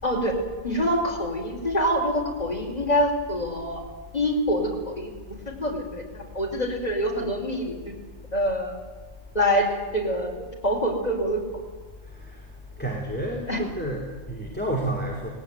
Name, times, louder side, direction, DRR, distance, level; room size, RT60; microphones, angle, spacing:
voice 1, 0.0-0.3 0.6-3.8 4.1-5.1 5.6-7.7 8.3-8.7 9.3-11.4 13.5-13.6, equal, 30° left, 0 dB, 4.9 m, -25 dB
voice 2, 12.8-15.3, right 1 dB, 5° left, 0 dB, 3.0 m, -30 dB
19.5 x 17.5 x 9.4 m, 1.4 s
omnidirectional pair, 1.3 m